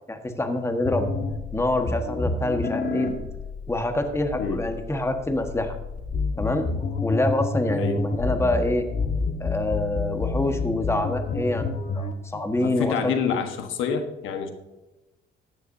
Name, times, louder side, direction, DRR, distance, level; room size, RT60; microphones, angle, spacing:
voice 1, 0.1-1.1 1.5-3.1 3.7-5.8 6.4-6.7 7.0-8.8 9.4-13.1, left 1 dB, 15° left, 6 dB, 1.4 m, -26 dB
sound 1, 0.9-12.1, left 3 dB, 40° left, 1.6 m, -29 dB
voice 2, 12.3-14.5, left 6 dB, 85° left, 7 dB, 1.3 m, -28 dB
14.0 x 10.0 x 2.7 m, 1.0 s
cardioid pair, 90°, 20 cm